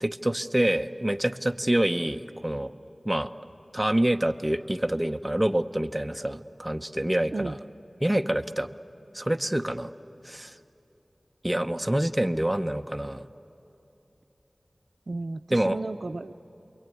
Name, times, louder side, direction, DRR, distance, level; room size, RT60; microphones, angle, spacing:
voice 1, 0.0-2.7 3.0-3.3 3.7-7.5 8.0-8.7 9.1-9.9 10.2-10.5 11.4-13.2 15.5-15.8, right 1 dB, 15° right, 7 dB, 0.9 m, -26 dB
voice 2, 15.1-16.5, right 3 dB, 80° right, 10 dB, 0.5 m, -34 dB
27.5 x 23.0 x 9.4 m, 3.0 s
wide cardioid pair, 55°, 0 cm